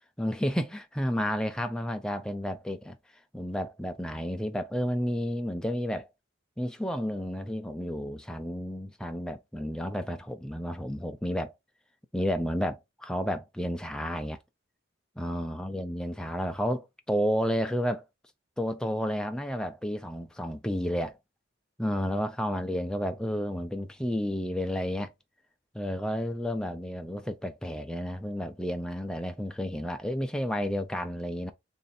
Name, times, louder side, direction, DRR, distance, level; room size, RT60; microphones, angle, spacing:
voice 1, 0.2-3.0 3.3-6.1 6.6-11.5 12.1-14.4 15.2-18.1 18.6-21.2 21.8-25.1 25.7-31.5, equal, 5° left, 0.4 m, -31 dB
3.1 x 2.7 x 4.1 m
head